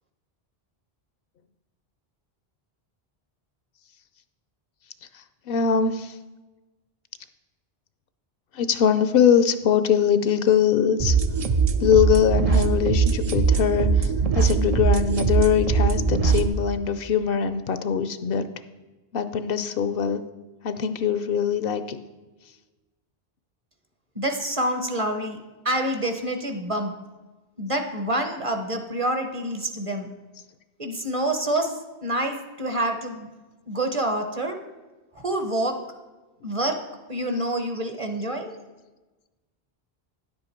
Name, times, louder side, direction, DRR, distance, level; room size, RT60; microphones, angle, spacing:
voice 1, 5.1-6.2 8.5-11.2 11.8-18.5 19.1-20.2 20.6-22.0, left 8 dB, 70° left, 12 dB, 0.7 m, -22 dB
sound 1, 11.0-16.5, right 5 dB, 50° right, 0.4 m, -21 dB
voice 2, 24.2-25.4 25.6-26.9 27.6-30.1 30.8-31.7 32.0-33.3 33.7-34.6 35.2-35.7 36.4-36.8 37.1-38.6, right 1 dB, 35° right, 6 dB, 0.8 m, -27 dB
10.0 x 7.7 x 4.4 m, 1.2 s
omnidirectional pair, 1.0 m